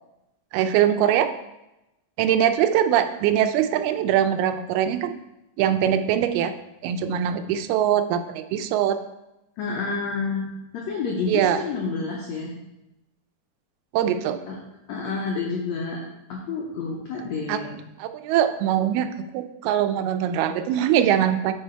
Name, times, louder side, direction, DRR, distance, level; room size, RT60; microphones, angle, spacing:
voice 1, 0.5-1.3 2.2-5.1 5.6-6.5 6.8-9.0 11.3-11.6 13.9-14.4 17.5-17.6 18.0-21.5, right 10 dB, 90° right, 9 dB, 2.5 m, -22 dB
voice 2, 9.6-12.5 14.5-14.6 14.9-16.0 16.3-17.8, left 4 dB, 70° left, -2 dB, 1.7 m, -29 dB
7.8 x 5.8 x 4.5 m, 0.92 s
omnidirectional pair, 4.4 m